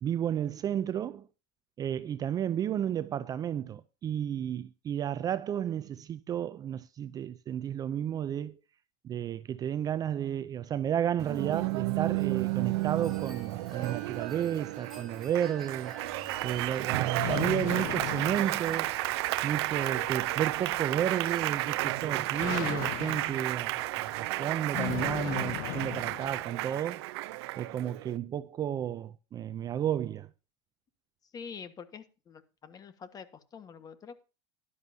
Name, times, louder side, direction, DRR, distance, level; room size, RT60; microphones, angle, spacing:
voice 1, 0.0-1.3 1.8-8.5 9.0-15.9 16.4-19.0 19.4-27.0 27.6-30.3, right 10 dB, 25° right, 0.5 m, -32 dB
Applause, 11.2-28.2, right 19 dB, 70° right, 0.7 m, -32 dB
Wind chime, 12.1-25.5, right 3 dB, ahead, 3.9 m, -53 dB
sound 1, 16.1-26.5, left 20 dB, 55° left, 0.5 m, -39 dB
voice 2, 31.3-33.3 33.5-34.2, left 6 dB, 25° left, 1.4 m, -46 dB
12.5 x 11.0 x 2.7 m
supercardioid pair, 130°, 14 cm